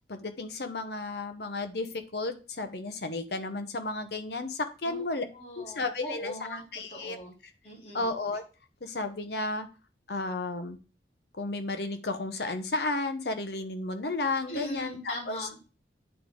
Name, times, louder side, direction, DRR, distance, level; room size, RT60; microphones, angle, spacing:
voice 1, 0.1-5.2 5.6-7.2 7.9-8.4 8.8-9.7 10.1-10.8 11.4-15.5, left 2 dB, 65° left, 8 dB, 0.9 m, -33 dB
voice 2, 4.8-7.3 7.6-8.1 14.5-15.6, equal, 35° left, -4 dB, 2.7 m, -41 dB
9.0 x 3.5 x 3.8 m, 0.33 s
head